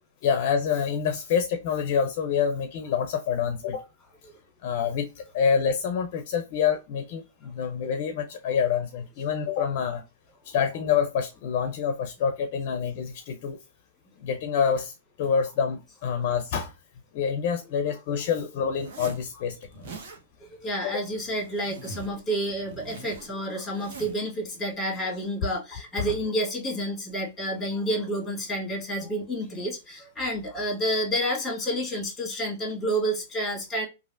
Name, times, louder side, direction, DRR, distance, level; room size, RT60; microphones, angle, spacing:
voice 1, 0.2-3.8 4.6-10.0 10.4-13.6 14.2-16.7 17.1-19.9 20.8-21.0 26.0-26.1, left 7 dB, 50° left, 0.5 m, -27 dB
Zipper (clothing), 18.7-19.3 19.6-20.2 21.0-22.2 22.5-24.2, right 3 dB, 55° right, 1.0 m, -43 dB
voice 2, 20.6-33.8, equal, 15° left, 1.7 m, -29 dB
3.2 x 2.5 x 2.5 m
hypercardioid pair, 135°, 0 cm